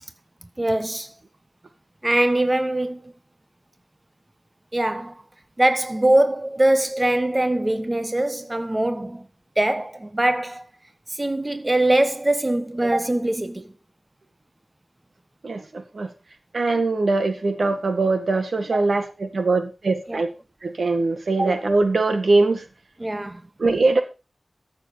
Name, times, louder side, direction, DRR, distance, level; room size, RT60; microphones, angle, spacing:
voice 1, 0.6-1.1 2.0-3.1 4.7-5.1 5.6-9.3 9.6-10.6 11.1-13.6 18.7-18.8 20.1-20.2 21.4-21.5 23.0-23.4, right 1 dB, 25° right, 1.1 m, -22 dB
voice 2, 15.4-16.1 16.5-20.3 20.6-22.6 23.6-24.0, right 3 dB, 80° right, 1.9 m, -22 dB
14.0 x 7.4 x 5.1 m
wide cardioid pair, 75°, 0 cm